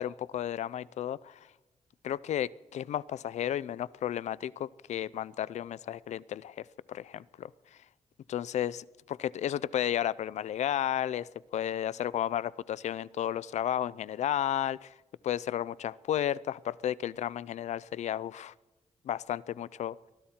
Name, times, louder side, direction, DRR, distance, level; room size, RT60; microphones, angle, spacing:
voice 1, 0.0-1.5 2.0-7.5 8.3-14.9 15.2-18.5 19.0-20.0, left 11 dB, 75° left, 21 dB, 0.4 m, -33 dB
23.0 x 13.5 x 4.3 m, 1.1 s
wide cardioid pair, 120°, 12 cm